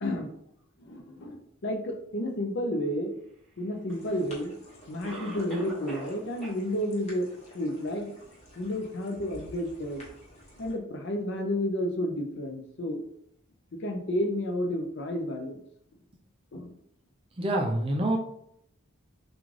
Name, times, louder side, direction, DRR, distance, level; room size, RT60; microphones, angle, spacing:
voice 1, 0.8-1.4 1.6-3.1 3.6-4.5 4.9-7.3 7.5-8.1 8.6-10.0 10.6-13.0 13.8-15.6 16.5-16.7, left 1 dB, 50° left, 4 dB, 0.5 m, -31 dB
sound 1, 3.9-10.7, equal, 30° left, 1.0 m, -49 dB
Cough, 3.9-4.0 5.0-6.2 6.4-6.5 7.1-7.2 7.7-7.8, right 1 dB, ahead, 1.0 m, -40 dB
voice 2, 17.4-18.2, right 1 dB, 25° right, 1 dB, 0.4 m, -26 dB
3.7 x 2.4 x 3.2 m, 0.71 s
head